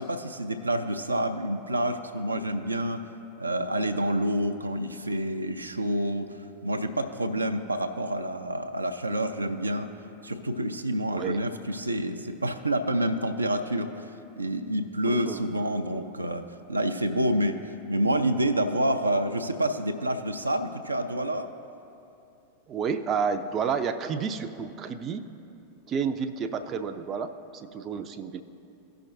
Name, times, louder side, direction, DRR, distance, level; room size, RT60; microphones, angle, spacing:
voice 1, 0.0-3.0 3.4-9.9 10.2-14.1 14.4-21.5, right 1 dB, 80° right, 6 dB, 0.5 m, -28 dB
voice 2, 11.1-11.4 15.1-15.4 22.7-25.3 25.9-28.4, right 6 dB, 30° right, 9 dB, 0.4 m, -30 dB
16.5 x 5.8 x 2.6 m, 2.7 s
figure-of-eight pair, 90°, 0 cm